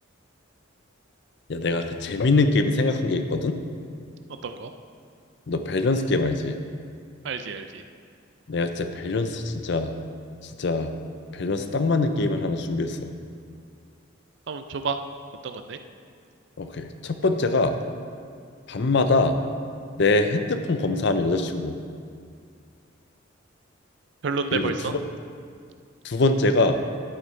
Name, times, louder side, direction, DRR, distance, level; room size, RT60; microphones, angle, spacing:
voice 1, 1.5-3.6 5.5-6.6 8.5-9.9 10.6-10.9 11.3-13.1 16.6-17.7 18.7-19.4 20.0-21.7 24.5-25.0 26.0-26.8, left 3 dB, 55° left, 8 dB, 0.6 m, -23 dB
voice 2, 7.2-7.8 14.5-15.0 15.4-15.8 24.2-24.9, right 5 dB, 60° right, 8 dB, 0.4 m, -29 dB
10.0 x 9.0 x 3.3 m, 2.2 s
head